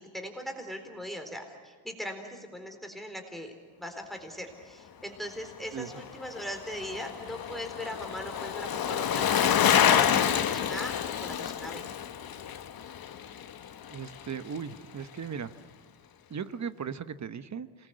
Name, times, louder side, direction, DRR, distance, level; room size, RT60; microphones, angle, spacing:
voice 1, 0.0-3.5 3.8-10.9 11.2-11.8, equal, ahead, 5 dB, 4.0 m, -40 dB
voice 2, 5.7-6.0 13.9-15.5 16.3-17.9, right 7 dB, 35° right, 13 dB, 1.0 m, -37 dB
Bicycle, 5.8-14.3 14.6-14.7, left 9 dB, 50° left, 1.3 m, -28 dB
27.0 x 20.0 x 8.0 m, 1.5 s
cardioid pair, 105°, 47 cm